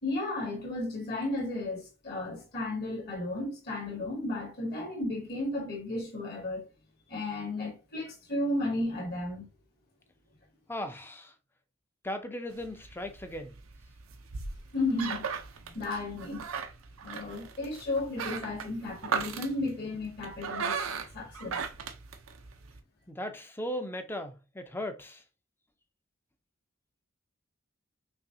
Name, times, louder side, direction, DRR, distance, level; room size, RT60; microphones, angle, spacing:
voice 1, 0.0-6.7 7.1-9.5 14.7-15.3 15.6-16.5 17.0-20.8 21.1-21.6, left 2 dB, 50° left, 2.3 m, -34 dB
voice 2, 10.7-11.3 12.0-13.5 23.1-25.2, left 1 dB, 10° left, 0.6 m, -37 dB
sound 1, 12.5-22.8, right 5 dB, 90° right, 0.6 m, -38 dB
5.7 x 2.9 x 2.7 m
head